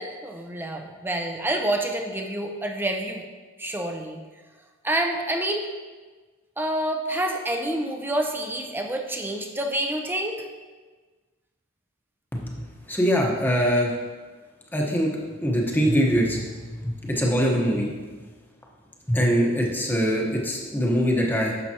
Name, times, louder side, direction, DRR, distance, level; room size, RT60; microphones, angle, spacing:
voice 1, 0.0-3.2 3.6-4.2 4.8-5.6 6.6-10.4, right 1 dB, 10° right, 3 dB, 0.7 m, -28 dB
voice 2, 12.4-13.9 14.7-15.1 15.4-16.4 16.8-17.9 19.1-21.7, equal, 10° left, -2 dB, 1.1 m, -23 dB
10.5 x 6.8 x 2.9 m, 1.4 s
head